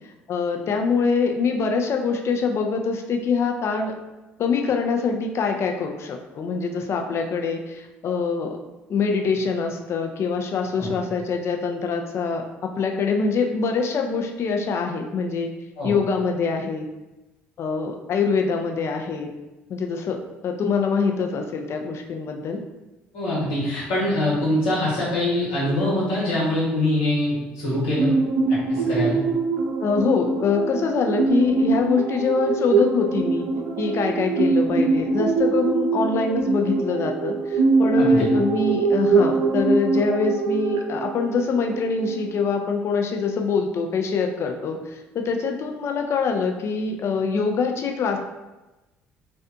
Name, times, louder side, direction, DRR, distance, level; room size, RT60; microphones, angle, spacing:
voice 1, 0.3-3.9 4.4-8.6 8.9-15.5 15.8-16.9 17.6-19.3 19.7-20.2 20.4-22.6 29.8-33.5 33.8-48.2, left 5 dB, 50° left, 3 dB, 0.4 m, -24 dB
voice 2, 23.1-28.1 28.5-29.2 38.0-38.3, left 1 dB, 80° left, -8 dB, 1.1 m, -24 dB
sound 1, 28.0-42.4, right 4 dB, 80° right, 0.3 m, -23 dB
2.5 x 2.2 x 2.5 m, 1.1 s
hypercardioid pair, 60°, 6 cm